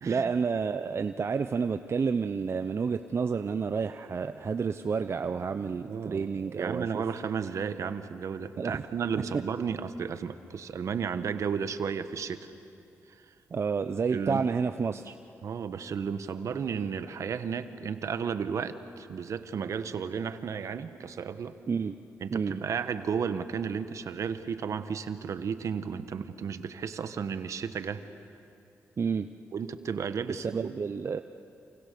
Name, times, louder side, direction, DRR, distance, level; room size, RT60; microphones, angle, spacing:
voice 1, 0.0-7.0 8.6-8.8 13.5-15.2 21.7-21.9 22.3-22.5 29.0-29.3 30.3-31.2, right 5 dB, 50° right, 9 dB, 0.8 m, -30 dB
voice 2, 5.9-6.2 6.6-12.5 14.1-14.4 15.4-21.6 22.2-28.0 29.5-30.7, right 6 dB, 70° right, 10 dB, 1.3 m, -33 dB
29.5 x 28.0 x 6.9 m, 2.7 s
cardioid pair, 60°, 6 cm